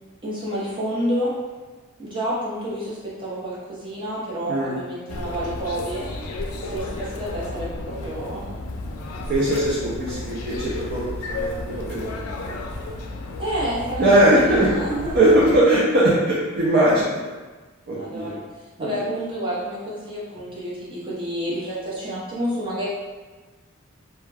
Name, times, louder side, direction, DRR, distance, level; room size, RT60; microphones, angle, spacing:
voice 1, 0.2-1.3 2.0-6.0 6.7-8.4 13.4-15.4 18.0-18.4 18.8-22.9, equal, 25° right, -8 dB, 0.8 m, -29 dB
voice 2, 4.5-4.8 9.3-11.1 11.4-12.3 14.0-14.7 15.1-17.2 17.9-18.3 18.8-19.0, right 1 dB, 50° right, -7 dB, 0.5 m, -20 dB
sound 1, 5.1-15.6, left 2 dB, 90° left, 0.4 m, -33 dB
2.2 x 2.2 x 3.2 m, 1.3 s
head